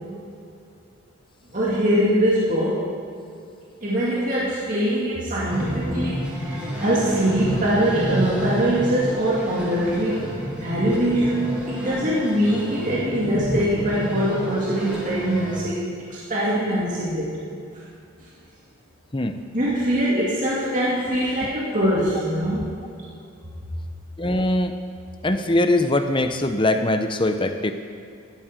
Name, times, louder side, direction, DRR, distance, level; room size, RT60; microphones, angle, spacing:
voice 1, 1.5-2.8 3.8-10.2 10.6-15.8 16.1-17.3 17.7-17.8 19.5-22.8, right 1 dB, 35° right, -7 dB, 2.4 m, -23 dB
sound 1, 5.5-15.6, equal, 5° right, 3.6 m, -29 dB
voice 2, 24.2-24.7 25.2-27.7, left 1 dB, 20° left, 8 dB, 0.7 m, -21 dB
18.0 x 12.5 x 4.7 m, 2.5 s
head